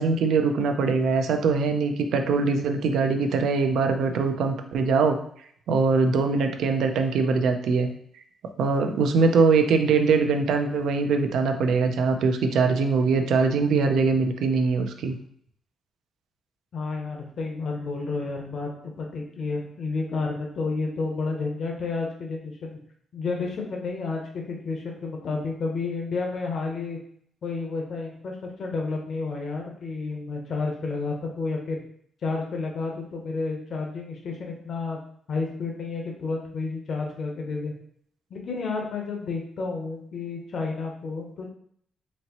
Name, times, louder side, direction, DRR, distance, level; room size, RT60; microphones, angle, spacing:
voice 1, 0.0-5.2 5.7-7.9 8.6-15.2, right 4 dB, 80° right, 6 dB, 0.5 m, -22 dB
voice 2, 16.7-22.8 23.1-24.2 24.5-27.0 27.4-31.8 32.2-35.0 35.3-37.7 38.3-41.5, left 3 dB, 55° left, 0 dB, 0.8 m, -31 dB
4.2 x 2.9 x 2.9 m, 0.63 s
cardioid pair, 150°, 0 cm